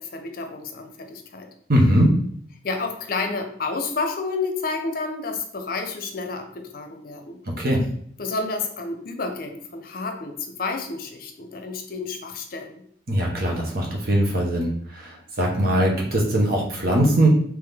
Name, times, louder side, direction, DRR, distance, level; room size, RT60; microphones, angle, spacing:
voice 1, 0.0-1.5 2.6-7.4 8.2-12.8, left 3 dB, 50° left, 5 dB, 0.6 m, -30 dB
voice 2, 1.7-2.2 7.6-7.8 13.1-17.3, right 1 dB, 55° right, -1 dB, 1.1 m, -21 dB
3.6 x 3.1 x 3.5 m, 0.63 s
head